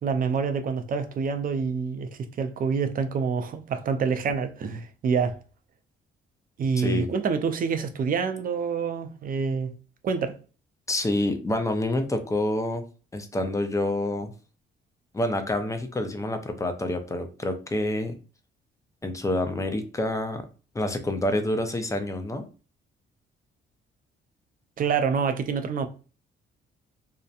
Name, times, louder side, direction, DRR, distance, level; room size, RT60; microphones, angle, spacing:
voice 1, 0.0-5.4 6.6-9.7 10.0-10.4 24.8-25.9, right 5 dB, 45° right, 0.4 m, -27 dB
voice 2, 6.8-7.1 10.9-12.8 13.1-14.3 15.1-18.2 19.0-20.5 20.7-22.5, left 1 dB, 15° left, 0.4 m, -27 dB
2.8 x 2.1 x 2.3 m
cardioid pair, 90°, 20 cm